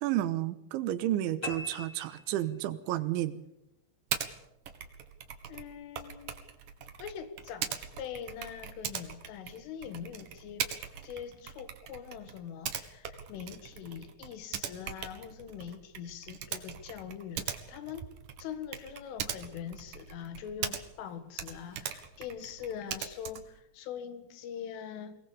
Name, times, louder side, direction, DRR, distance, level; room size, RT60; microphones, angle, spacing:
voice 1, 0.0-3.4, right 13 dB, 75° right, 3.3 m, -31 dB
sound 1, 1.4-3.0, left 4 dB, 55° left, 4.1 m, -42 dB
Typing, 4.1-4.3 4.7-21.1 21.3-23.6, right 9 dB, 60° right, 2.4 m, -40 dB
voice 2, 5.5-6.4 7.0-10.7 11.0-18.1 18.4-25.2, left 8 dB, 75° left, 4.2 m, -43 dB
24.0 x 19.5 x 6.9 m
omnidirectional pair, 5.7 m